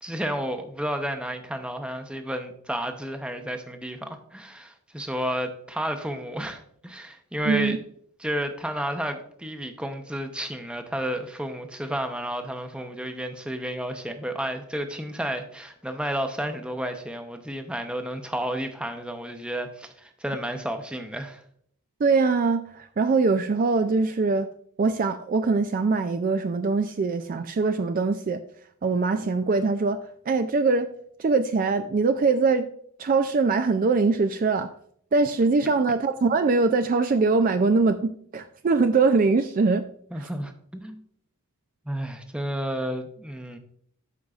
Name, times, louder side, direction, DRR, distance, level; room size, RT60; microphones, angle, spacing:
voice 1, 0.0-7.8 8.2-21.4 40.1-41.0 41.9-43.6, equal, 5° right, 5 dB, 0.7 m, -31 dB
voice 2, 7.5-7.8 22.0-24.5 24.8-28.4 28.8-30.0 30.3-30.9 31.2-32.7 33.0-34.7 35.1-39.8 40.2-40.3, right 4 dB, 40° right, 9 dB, 0.3 m, -22 dB
12.5 x 5.4 x 2.4 m, 0.63 s
head